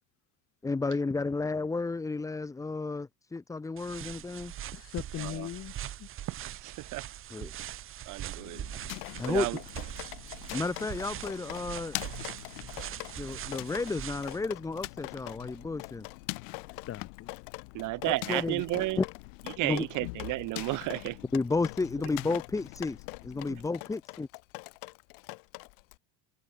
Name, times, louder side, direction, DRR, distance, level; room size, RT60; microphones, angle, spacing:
voice 1, 0.6-4.5 7.3-7.5 9.2-9.5 10.5-12.0 13.2-16.1 18.1-19.0 19.6-19.8 21.3-23.0 23.2-24.3, left 3 dB, 10° left, 1.3 m, -32 dB
sound 1, 3.8-14.4, right 11 dB, 35° right, 5.1 m, -42 dB
voice 2, 4.7-6.1 16.7-17.3, left 12 dB, 35° left, 7.7 m, -40 dB
voice 3, 6.4-7.0 7.6-7.7 8.1-8.7 9.3-9.6 17.7-19.0 19.6-21.2 23.5-23.6, right 20 dB, 50° right, 3.9 m, -32 dB
sound 2, 8.4-23.7, left 29 dB, 85° left, 5.1 m, -44 dB
Drip, 9.0-26.0, left 37 dB, 65° left, 6.2 m, -45 dB
cardioid pair, 165°, 39 cm